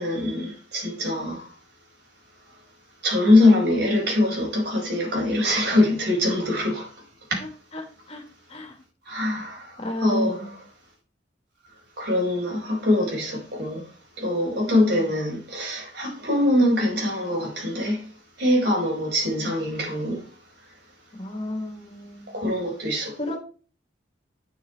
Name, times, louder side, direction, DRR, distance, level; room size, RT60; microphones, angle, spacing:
voice 1, 0.0-1.5 3.0-6.9 7.3-7.4 9.1-10.4 12.0-13.9 14.2-18.1 18.4-20.3 22.3-23.4, left 1 dB, 60° right, 5.2 m, -23 dB
voice 2, 7.4-8.2 8.5-8.8 9.8-10.5 14.7-15.1 21.1-22.3 23.2-23.4, left 1 dB, 35° left, 2.3 m, -32 dB
9.3 x 6.6 x 4.5 m
head